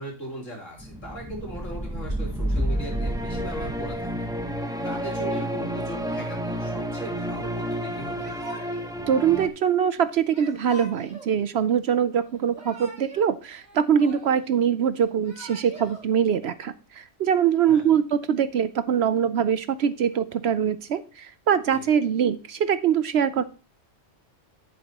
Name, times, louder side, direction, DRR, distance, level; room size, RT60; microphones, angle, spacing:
voice 1, 0.0-4.3 4.8-8.5 17.7-18.0 21.7-21.9, right 1 dB, 75° left, -1 dB, 3.7 m, -39 dB
sound 1, 0.8-9.5, equal, 5° right, 0.8 m, -30 dB
Yell / Crying sobbing, 8.2-9.0 10.3-11.3 12.3-13.3 13.6-14.5 15.1-16.0, right 1 dB, 35° right, 3.5 m, -44 dB
voice 2, 9.1-23.4, right 8 dB, 65° right, 13 dB, 0.7 m, -23 dB
11.0 x 8.6 x 2.9 m, 0.33 s
omnidirectional pair, 1.3 m